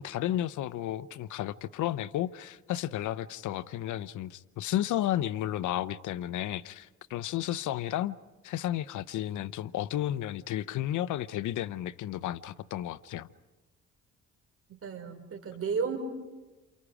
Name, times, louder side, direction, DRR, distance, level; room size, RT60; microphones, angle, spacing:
voice 1, 0.0-8.2 8.4-13.3, left 12 dB, 75° left, 0.8 m, -32 dB
voice 2, 14.7-16.0, right 6 dB, 50° right, 5.7 m, -33 dB
29.0 x 29.0 x 5.0 m
cardioid pair, 90°, 30 cm